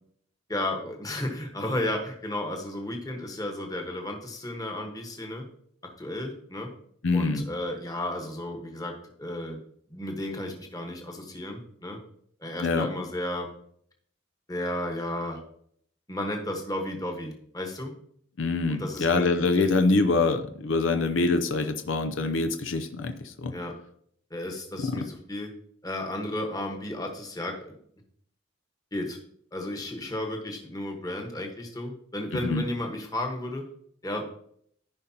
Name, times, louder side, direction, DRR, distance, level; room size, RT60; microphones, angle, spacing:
voice 1, 0.5-5.4 5.8-6.7 7.1-8.9 9.2-9.6 9.9-12.0 12.4-13.5 14.5-15.4 16.1-17.9 18.7-19.3 19.6-19.7 23.5-23.7 24.3-25.5 25.8-27.8 28.9-29.2 29.5-33.6 34.0-34.3, left 1 dB, 20° left, 2 dB, 1.3 m, -33 dB
voice 2, 7.0-7.4 12.6-12.9 18.4-23.5 24.8-25.0 32.4-32.6, left 3 dB, 75° left, 7 dB, 0.6 m, -25 dB
14.5 x 5.2 x 2.9 m, 0.66 s
head